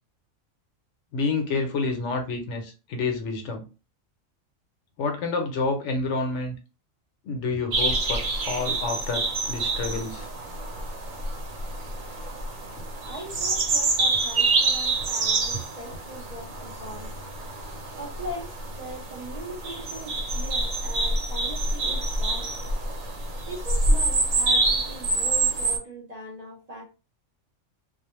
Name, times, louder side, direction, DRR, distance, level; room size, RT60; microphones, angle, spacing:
voice 1, 1.1-3.6 5.0-6.5 7.2-10.3 12.8-12.9 15.5-15.6, left 3 dB, 70° left, 0.9 m, -29 dB
sound 1, 7.7-25.8, right 2 dB, 85° right, 1.1 m, -27 dB
voice 2, 13.1-17.1 18.0-22.6 23.5-26.8, right 1 dB, 45° right, 0.6 m, -40 dB
2.4 x 2.0 x 2.9 m
omnidirectional pair, 1.3 m